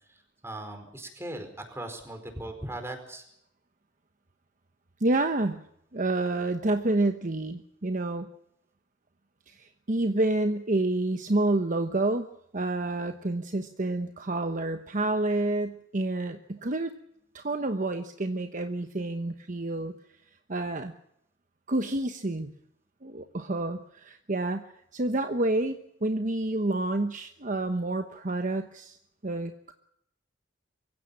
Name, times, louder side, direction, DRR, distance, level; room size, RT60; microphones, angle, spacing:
voice 1, 0.4-3.2, right 1 dB, 15° right, 6 dB, 4.7 m, -38 dB
voice 2, 5.0-5.6 5.9-8.3 9.5-12.3 12.5-16.9 17.3-19.9 20.5-20.9 21.7-22.5 23.0-24.6 24.9-25.8 26.0-29.0 29.2-29.7, right 2 dB, 45° right, 7 dB, 1.1 m, -28 dB
24.0 x 16.0 x 8.8 m, 0.76 s
head